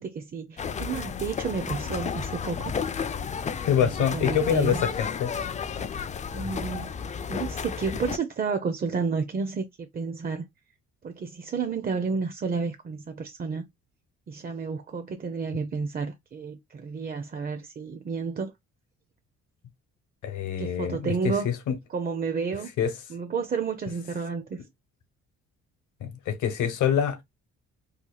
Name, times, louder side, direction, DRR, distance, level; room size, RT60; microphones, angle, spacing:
voice 1, 0.0-2.7 3.7-4.8 6.3-6.9 7.3-10.5 11.0-13.6 14.3-18.5 20.6-21.5 21.9-22.7 23.1-24.6, right 5 dB, 30° right, 0.5 m, -31 dB
sound 1, 0.6-8.2, left 6 dB, 25° left, 0.3 m, -32 dB
voice 2, 3.6-5.3 20.2-21.7 22.8-22.9 26.0-27.2, left 8 dB, 80° left, 1.0 m, -25 dB
2.8 x 2.3 x 3.8 m
cardioid pair, 90°, 30 cm